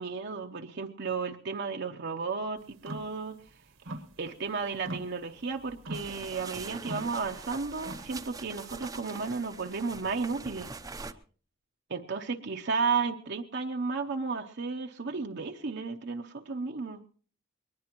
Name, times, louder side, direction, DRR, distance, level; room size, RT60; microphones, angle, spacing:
voice 1, 0.0-3.4 4.2-10.7 11.9-17.0, right 4 dB, 55° right, 3 dB, 0.8 m, -33 dB
sound 1, 2.7-3.2 3.5-4.5 4.8-8.3, right 1 dB, 80° right, 1.3 m, -42 dB
sound 2, 5.9-11.1, right 3 dB, 20° right, 0.6 m, -43 dB
21.5 x 19.0 x 3.0 m, 0.43 s
head